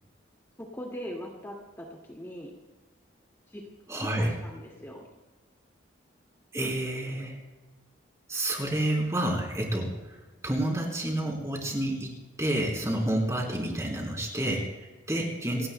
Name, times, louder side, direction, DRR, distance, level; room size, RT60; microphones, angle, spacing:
voice 1, 0.6-2.5 3.5-3.6 3.9-5.1 15.6-15.7, equal, 15° left, -2 dB, 2.0 m, -40 dB
voice 2, 3.9-4.3 6.5-7.4 8.3-9.9 10.4-12.1 12.4-15.7, right 1 dB, 15° right, 0 dB, 3.5 m, -29 dB
29.0 x 17.0 x 2.2 m, 1.2 s
head